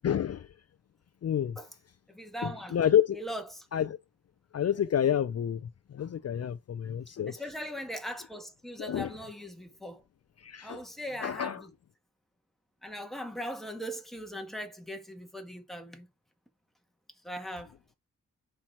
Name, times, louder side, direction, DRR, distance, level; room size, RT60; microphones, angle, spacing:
voice 1, 0.0-0.5 1.2-1.5 2.4-3.2 3.7-3.9 4.5-5.6 5.9-7.3 8.9-9.1 10.4-10.8 11.2-11.6, left 9 dB, 55° left, 0.5 m, -28 dB
voice 2, 2.1-2.8 3.1-3.7 7.1-10.0 10.6-11.7 12.8-16.1 17.2-17.8, equal, ahead, 1.9 m, -40 dB
5.9 x 4.5 x 5.8 m
cardioid pair, 70°, 31 cm